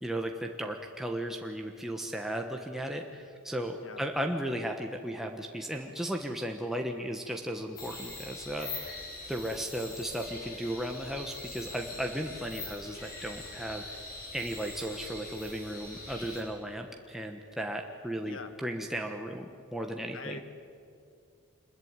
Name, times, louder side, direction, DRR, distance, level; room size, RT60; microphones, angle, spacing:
voice 1, 0.0-8.9 9.3-14.0 14.3-20.4, right 1 dB, ahead, 2 dB, 1.2 m, -35 dB
voice 2, 3.8-4.0 18.3-18.5 20.1-20.4, left 3 dB, 60° left, 9 dB, 1.9 m, -42 dB
sound 1, 7.8-16.4, left 2 dB, 40° left, 6.3 m, -43 dB
26.5 x 21.5 x 9.7 m, 2.5 s
head